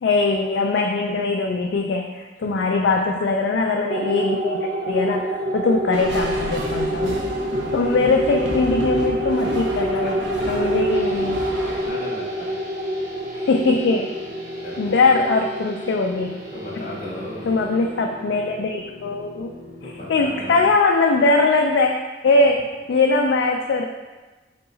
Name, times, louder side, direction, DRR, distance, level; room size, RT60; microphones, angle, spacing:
voice 1, 0.0-7.2 7.7-10.1 10.5-11.4 13.3-14.1 14.8-16.4 17.5-19.5 20.1-23.8, left 3 dB, 75° left, 1 dB, 0.3 m, -21 dB
voice 2, 2.4-2.9 5.4-5.5 9.4-9.5 9.8-11.2 11.7-12.6 14.6-15.0 16.5-17.6 19.8-20.7, left 1 dB, 45° left, -8 dB, 0.7 m, -36 dB
sound 1, 3.9-18.7, equal, 55° right, 0.4 m, -27 dB
sound 2, 5.9-11.9, right 1 dB, 90° right, 0.7 m, -32 dB
sound 3, 10.9-20.7, left 1 dB, 15° right, 0.7 m, -41 dB
4.7 x 2.9 x 3.8 m, 1.2 s
head